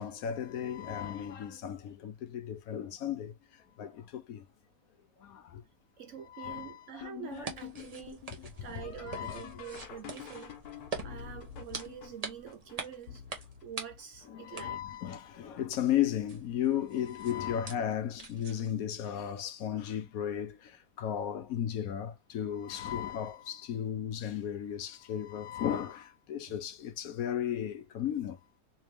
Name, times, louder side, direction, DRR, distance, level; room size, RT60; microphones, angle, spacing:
voice 1, 0.0-3.3 3.8-4.4 5.2-5.6 6.3-7.3 8.6-9.4 14.3-28.4, left 10 dB, 70° left, 1.1 m, -35 dB
voice 2, 6.0-10.6 11.0-14.8 26.5-26.6, right 8 dB, 60° right, 1.0 m, -46 dB
sound 1, 7.0-14.7 15.3-15.9 16.3-17.0 18.2-18.3 19.1-19.4 21.5-21.7 24.0-24.1, left 10 dB, 90° left, 1.3 m, -49 dB
sound 2, 7.3-18.8, right 4 dB, 35° right, 0.7 m, -46 dB
3.3 x 3.0 x 3.3 m
omnidirectional pair, 1.6 m